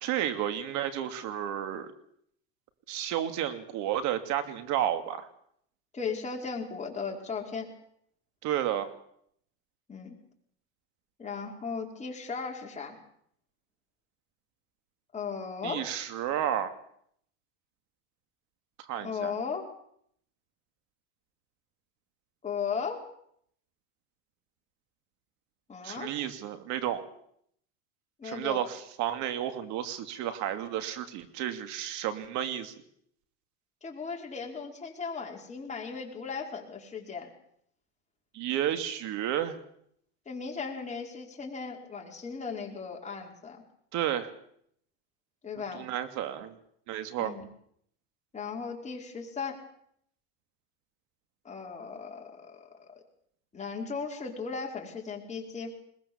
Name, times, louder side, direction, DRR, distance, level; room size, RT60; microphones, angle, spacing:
voice 1, 0.0-1.9 2.9-5.3 8.4-8.9 15.6-16.7 18.9-19.3 25.8-27.0 28.2-32.7 38.3-39.6 43.9-44.3 45.7-46.6 46.9-47.3, right 11 dB, 60° right, 9 dB, 2.8 m, -31 dB
voice 2, 5.9-7.7 9.9-10.2 11.2-13.0 15.1-15.8 19.0-19.7 22.4-23.0 25.7-26.1 28.2-28.6 33.8-37.3 40.3-43.6 45.4-45.8 47.2-47.5 48.3-49.6 51.5-52.9 53.5-55.7, left 5 dB, 20° left, 0 dB, 5.2 m, -36 dB
21.5 x 20.0 x 7.3 m, 0.69 s
supercardioid pair, 110°, 33 cm